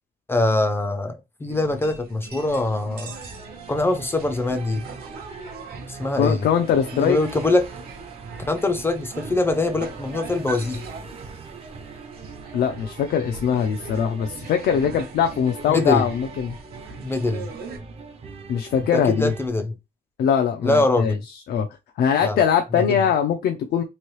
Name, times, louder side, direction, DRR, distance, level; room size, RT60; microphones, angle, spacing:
voice 1, 0.3-3.2 3.7-4.8 5.9-6.5 6.9-7.7 8.5-10.8 15.7-16.1 17.0-17.5 18.9-19.8 20.6-21.2 22.2-22.4 22.7-23.0, left 2 dB, 15° left, 0.4 m, -23 dB
sound 1, 1.5-17.8, right 4 dB, 80° right, 0.7 m, -41 dB
sound 2, 3.1-19.5, right 4 dB, 40° right, 0.5 m, -41 dB
voice 2, 6.2-7.2 12.5-16.6 18.5-19.3 20.2-21.1 21.5-21.7 22.0-23.8, left 8 dB, 85° left, 0.5 m, -21 dB
3.1 x 2.7 x 3.0 m
wide cardioid pair, 175°, 16 cm